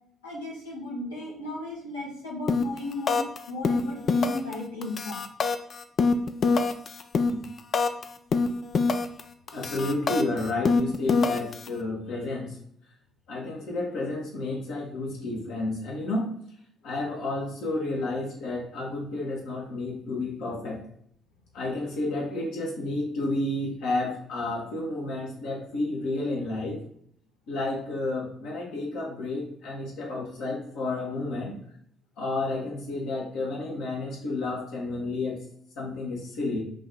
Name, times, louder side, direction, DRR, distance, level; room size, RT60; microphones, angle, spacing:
voice 1, 0.2-5.2, left 2 dB, 85° left, -5 dB, 1.2 m, -35 dB
sound 1, 2.5-2.8 3.1-3.4 3.6-4.5 4.8-8.0 8.3-9.2 9.5-11.7, left 4 dB, 45° left, 0.4 m, -24 dB
voice 2, 9.5-12.6 13.3-16.3 16.8-20.8 21.5-26.8 27.5-31.6 32.2-35.4 35.8-36.6, left 2 dB, 65° left, -2 dB, 1.3 m, -31 dB
5.0 x 2.7 x 3.5 m, 0.66 s
figure-of-eight pair, 45°, 0 cm